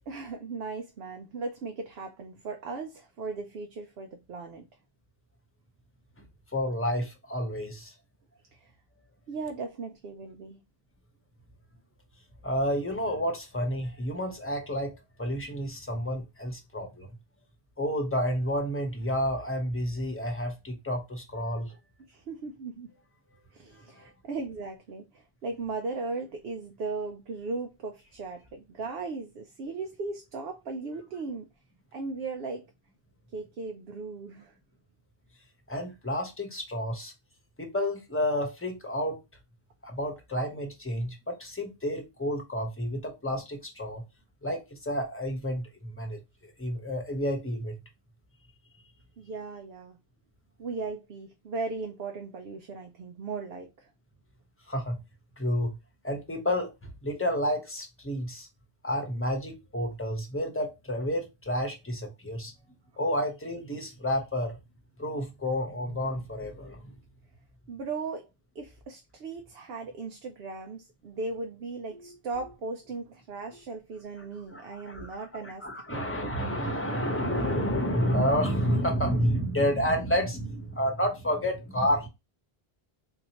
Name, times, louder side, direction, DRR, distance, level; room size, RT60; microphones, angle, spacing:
voice 1, 0.1-4.7 8.5-8.7 9.3-10.6 22.1-22.9 23.5-31.5 31.9-32.7 33.3-34.5 49.2-50.0 50.6-53.9 67.7-68.3 68.5-76.0, right 3 dB, 75° right, 0.9 m, -37 dB
voice 2, 6.5-7.9 12.4-17.1 17.8-21.7 23.8-24.1 35.7-37.1 37.6-39.2 39.8-44.0 44.4-47.7 54.7-55.0 55.4-55.8 56.0-58.5 58.8-62.5 63.0-64.6 65.0-66.9 74.5-82.1, equal, 15° left, 0.8 m, -30 dB
4.1 x 2.8 x 2.8 m
omnidirectional pair, 1.0 m